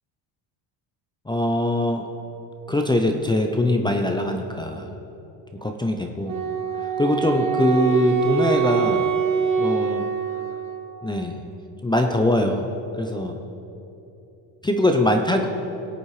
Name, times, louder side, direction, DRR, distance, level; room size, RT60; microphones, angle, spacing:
voice 1, 1.3-2.1 2.7-4.9 5.5-6.4 7.0-9.1 9.6-10.0 11.0-11.4 11.8-12.7 13.0-13.4 14.6-15.5, left 1 dB, 10° left, 4 dB, 0.5 m, -22 dB
Wind instrument woodwind instrument, 6.3-11.1, right 7 dB, 40° right, 1.0 m, -24 dB
17.0 x 8.6 x 3.2 m, 3.0 s
supercardioid pair, 100°, 49 cm